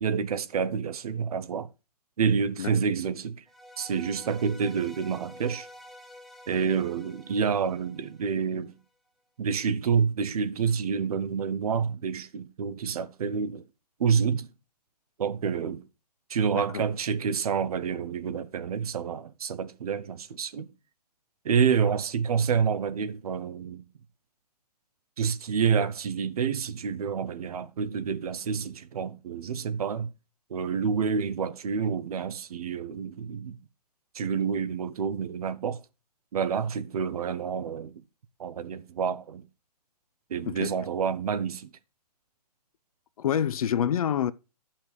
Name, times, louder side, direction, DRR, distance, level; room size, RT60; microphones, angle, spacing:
voice 1, 0.0-1.7 2.2-3.4 3.8-5.7 6.5-8.7 9.4-13.6 14.0-14.5 15.2-15.8 16.3-20.7 21.4-23.8 25.2-30.1 30.5-33.6 34.1-35.8 36.3-38.0 38.4-39.4 40.3-41.7, right 6 dB, 60° right, 1.0 m, -28 dB
sound 1, 3.5-8.7, equal, ahead, 0.6 m, -49 dB
voice 2, 40.4-40.7 43.2-44.3, left 9 dB, 55° left, 0.7 m, -27 dB
12.0 x 5.8 x 4.8 m
figure-of-eight pair, 130°, 21 cm